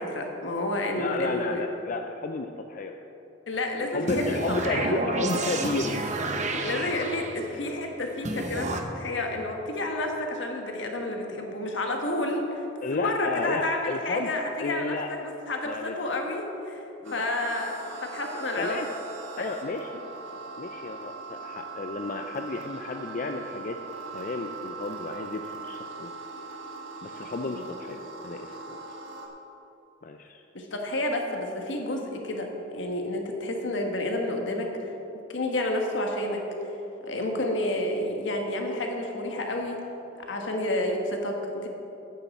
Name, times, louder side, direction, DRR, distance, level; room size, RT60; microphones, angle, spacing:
voice 1, 0.0-1.6 3.5-5.0 6.6-12.7 12.9-17.8 18.0-19.0 19.4-19.5 27.5-27.7 30.5-34.9 35.3-36.4 37.0-39.8 40.3-41.7, left 1 dB, 75° left, 2 dB, 1.5 m, -30 dB
voice 2, 1.0-2.9 3.8-6.7 12.8-14.3 14.6-15.1 15.7-16.0 17.0-17.2 18.6-18.9 19.4-20.0 20.6-23.8 24.1-26.1 27.0-28.8 30.0-30.4, left 3 dB, 45° left, 5 dB, 0.4 m, -32 dB
sound 1, 4.1-7.6 8.2-8.8, right 2 dB, 40° right, 0.8 m, -30 dB
sound 2, 17.0-29.3, right 4 dB, 75° right, 1.5 m, -41 dB
9.3 x 7.2 x 7.1 m, 3.0 s
head